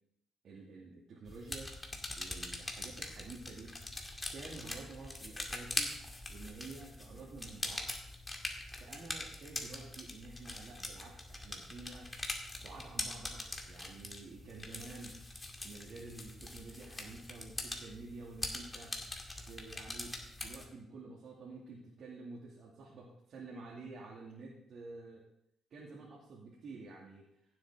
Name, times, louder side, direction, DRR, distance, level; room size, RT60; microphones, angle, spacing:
voice 1, 0.4-1.7 2.2-3.7 4.3-5.9 6.3-7.9 8.8-12.1 12.6-15.2 15.6-18.9 19.5-25.2 25.7-27.3, right 3 dB, 60° right, -5 dB, 2.6 m, -50 dB
sound 1, 1.3-20.7, left 2 dB, 20° left, 2.1 m, -43 dB
16.0 x 7.8 x 3.8 m, 0.77 s
cardioid pair, 90°, 0 cm